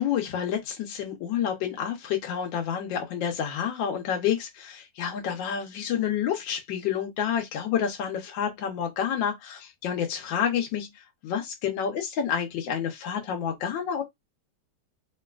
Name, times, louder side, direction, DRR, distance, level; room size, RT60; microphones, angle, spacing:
voice 1, 0.0-14.0, left 8 dB, 85° left, 1.4 m, -29 dB
3.1 x 2.8 x 2.3 m
omnidirectional pair, 2.0 m